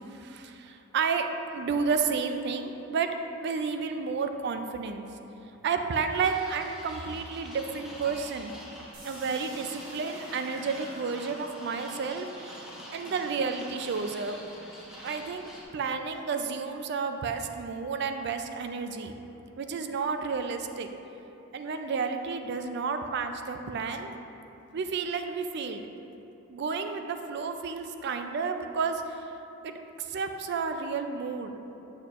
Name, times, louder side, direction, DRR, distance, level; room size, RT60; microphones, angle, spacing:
voice 1, 0.1-3.1 3.4-5.0 5.6-8.5 9.0-14.4 15.0-19.2 19.6-20.9 21.5-24.1 24.7-25.8 26.5-29.2 29.6-31.5, right 5 dB, 55° right, 7 dB, 0.4 m, -31 dB
sound 1, 6.2-15.6, equal, 5° right, 0.8 m, -46 dB
sound 2, 8.9-14.9, right 2 dB, 70° right, 1.1 m, -51 dB
6.8 x 6.4 x 2.5 m, 3.0 s
head